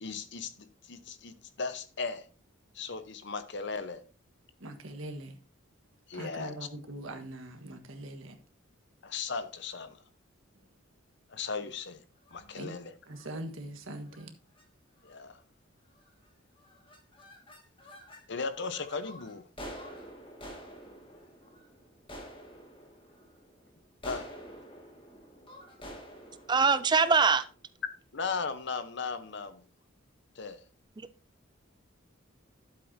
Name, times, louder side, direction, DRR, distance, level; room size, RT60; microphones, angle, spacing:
voice 1, 0.0-2.3 2.7-4.0 6.1-6.7 9.0-10.0 11.3-12.0 12.3-12.9 15.0-15.4 18.3-19.5 24.0-24.3 28.1-29.7 30.3-30.6, left 4 dB, 55° left, 0.9 m, -37 dB
voice 2, 4.6-5.4 6.1-8.3 12.5-12.8 13.1-14.3, right 1 dB, 75° right, 1.5 m, -42 dB
sound 1, 12.2-12.6 13.1-13.4 14.0-14.3 14.6-14.7 15.0-15.4 15.9-16.3 16.6-18.2 18.6-27.8, equal, 25° left, 1.9 m, -48 dB
voice 3, 26.5-27.5 31.0-31.1, right 5 dB, 20° right, 0.4 m, -23 dB
12.0 x 7.8 x 2.7 m
head